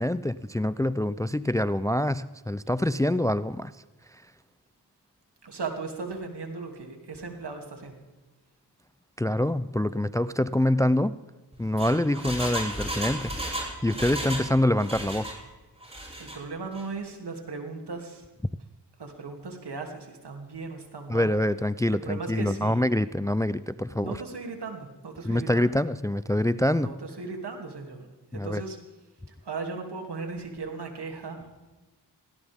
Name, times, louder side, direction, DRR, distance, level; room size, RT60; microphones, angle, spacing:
voice 1, 0.0-3.7 9.2-11.2 11.6-13.3 13.8-15.4 21.1-24.1 25.3-26.9 28.3-28.6, left 1 dB, 10° left, 16 dB, 0.4 m, -25 dB
voice 2, 5.4-8.0 16.2-18.3 19.0-21.3 22.0-22.9 24.0-25.7 26.7-28.1 28.3-28.8 29.3-31.5, right 4 dB, 70° right, 3 dB, 2.8 m, -37 dB
Engine, 11.5-14.5 14.8-15.4 15.8-16.4 16.7-16.8, right 1 dB, 15° right, 6.4 m, -34 dB
18.5 x 17.0 x 3.6 m, 1.2 s
cardioid pair, 50°, 41 cm